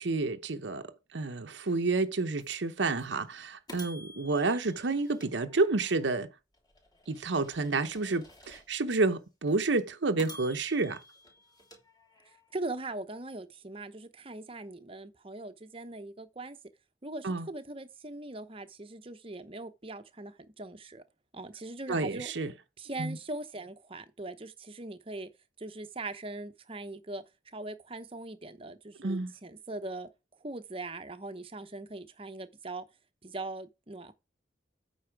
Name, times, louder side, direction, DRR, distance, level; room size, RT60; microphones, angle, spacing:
voice 1, 0.0-6.3 7.1-11.0 17.2-17.5 21.9-22.5 23.0-23.2 29.0-29.3, right 3 dB, 80° right, 0.8 m, -30 dB
sound 1, 2.4-2.5 3.0-3.1 3.7-6.0 6.5-9.0 9.5-9.6 10.2-12.5, left 1 dB, 20° left, 3.0 m, -52 dB
voice 2, 12.5-16.6 17.0-21.0 21.3-22.3 22.8-25.3 25.6-27.2 27.5-30.1 30.4-32.8 33.2-34.1, right 2 dB, 30° right, 0.9 m, -41 dB
8.7 x 5.4 x 4.6 m
head